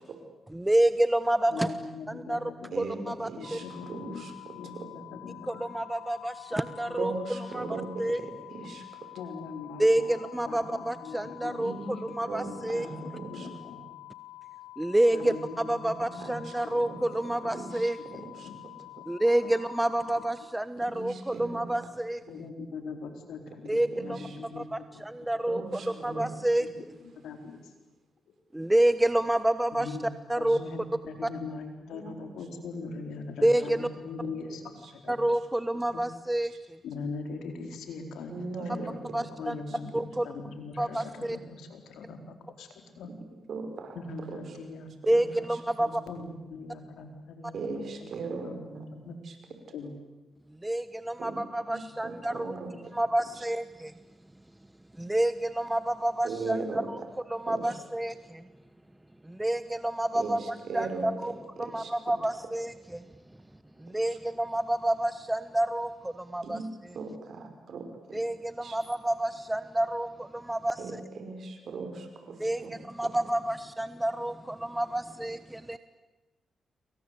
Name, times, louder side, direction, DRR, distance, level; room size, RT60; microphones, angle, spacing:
voice 1, 0.5-1.7 2.1-3.6 5.5-8.2 9.8-12.9 14.8-18.2 19.1-22.2 23.7-24.2 24.6-26.7 28.5-30.0 30.3-30.6 31.2-31.3 33.4-33.9 35.1-36.8 39.1-39.6 39.9-40.3 40.8-41.4 45.1-46.0 50.6-52.5 52.9-53.9 55.0-57.0 57.3-58.4 59.2-63.0 63.8-67.0 68.1-71.0 72.4-75.8, right 1 dB, 10° right, 12 dB, 1.1 m, -29 dB
voice 2, 1.5-2.8 3.1-4.2 4.5-5.6 6.8-7.0 7.6-7.8 9.2-10.1 10.4-12.3 12.6-13.8 15.1-16.3 16.6-16.8 17.3-17.5 18.1-18.5 19.0-19.1 19.4-19.5 22.3-25.0 25.8-26.2 27.2-27.6 29.7-30.1 30.4-35.2 35.9-36.0 36.8-42.7 43.0-43.1 43.9-45.5 45.8-47.6 48.0-48.1 48.4-48.6 48.9-49.2 49.7-49.9, left 4 dB, 85° left, 5 dB, 4.3 m, -41 dB
voice 3, 3.2-4.3 4.7-4.9 7.0-8.3 8.5-8.8 11.6-11.9 12.3-13.5 16.2-16.4 16.9-17.0 17.5-17.7 18.4-18.5 20.9-21.1 21.3-21.7 23.9-24.1 25.5-25.7 26.0-26.3 31.9-32.3 38.3-38.9 43.5-44.0 44.3-44.4 47.5-48.9 49.3-49.4 51.2-51.4 52.0-52.7 56.2-56.9 57.5-57.6 60.1-60.4 60.7-61.1 61.6-61.9 66.4-66.6 67.0-68.2 68.6-68.8 70.8-70.9 71.2-72.3 72.6-72.7, right 4 dB, 65° right, 6 dB, 5.4 m, -37 dB
sound 1, 3.4-20.3, left 17 dB, 40° left, 4.7 m, -48 dB
28.5 x 24.0 x 8.4 m, 1.1 s
cardioid pair, 65°, 0 cm